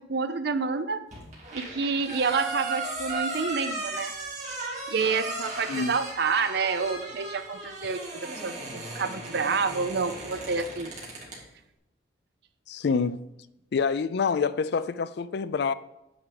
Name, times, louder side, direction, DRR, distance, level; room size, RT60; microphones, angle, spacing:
voice 1, 0.1-1.0 1.5-4.1 4.9-10.9, right 4 dB, 55° right, 0.5 m, -28 dB
sound 1, 1.1-11.4, right 3 dB, 40° right, 2.2 m, -36 dB
voice 2, 12.7-13.2 13.7-15.7, left 5 dB, 55° left, 0.3 m, -27 dB
8.5 x 4.8 x 5.2 m
head